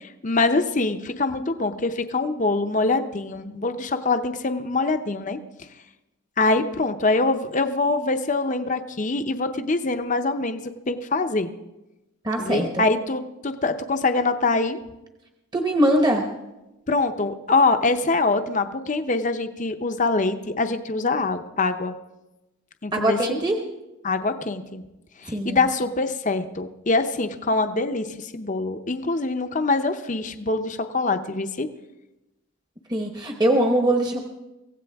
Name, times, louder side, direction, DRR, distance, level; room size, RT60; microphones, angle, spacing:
voice 1, 0.0-5.4 6.4-11.5 12.4-14.8 16.9-21.9 22.8-23.4 24.0-24.8 25.2-31.7, left 3 dB, 35° left, 8 dB, 0.7 m, -24 dB
voice 2, 12.2-12.8 15.5-16.3 22.9-23.6 25.3-25.6 32.9-34.2, right 1 dB, 20° right, 2 dB, 1.0 m, -22 dB
24.0 x 16.0 x 3.5 m, 1.0 s
head